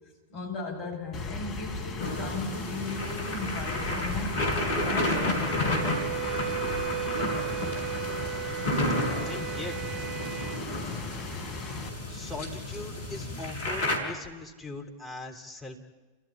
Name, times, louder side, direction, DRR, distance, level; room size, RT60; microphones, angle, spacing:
voice 1, 0.3-4.4 4.8-6.1, left 2 dB, 45° left, 2 dB, 6.6 m, -36 dB
Rain, 1.1-11.9, left 3 dB, 30° left, 3.4 m, -38 dB
sound 1, 2.0-14.0, left 1 dB, 60° left, 5.0 m, -32 dB
Wind instrument woodwind instrument, 4.9-10.6, right 12 dB, 20° right, 1.1 m, -36 dB
voice 2, 9.3-9.8 12.1-15.8, left 2 dB, 5° left, 0 dB, 3.4 m, -40 dB
29.5 x 15.5 x 9.9 m, 1.2 s
figure-of-eight pair, 90°, 0 cm